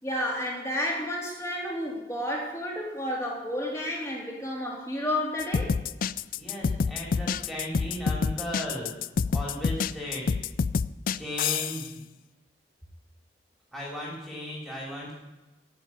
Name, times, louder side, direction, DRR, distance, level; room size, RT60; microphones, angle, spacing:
voice 1, 0.0-5.8, left 1 dB, 15° left, -2 dB, 3.6 m, -31 dB
sound 1, 5.4-11.9, left 5 dB, 55° left, 0.4 m, -27 dB
voice 2, 6.4-8.9 9.3-10.3 11.1-12.0 13.7-15.1, equal, ahead, -4 dB, 3.5 m, -36 dB
14.0 x 7.4 x 9.0 m, 1.1 s
head